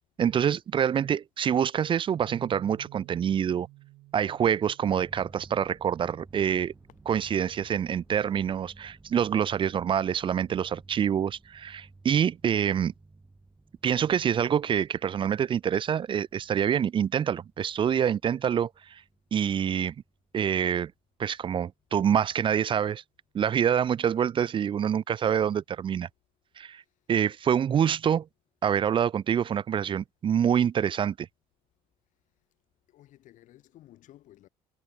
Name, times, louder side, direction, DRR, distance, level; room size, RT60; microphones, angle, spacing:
voice 1, 0.2-3.7 4.1-6.7 7.1-12.9 13.8-19.0 19.3-19.9 20.3-20.9 21.2-23.0 23.3-26.1 26.6-26.8 27.1-28.3 28.6-31.3, right 8 dB, 40° right, 0.4 m, -26 dB
Bass guitar, 2.3-8.5, right 19 dB, 80° right, 0.9 m, -53 dB
sound 1, 4.9-20.9, right 3 dB, 15° right, 1.4 m, -55 dB
voice 2, 26.7-27.1 32.9-34.5, left 14 dB, 70° left, 3.0 m, -55 dB
supercardioid pair, 75°, 13 cm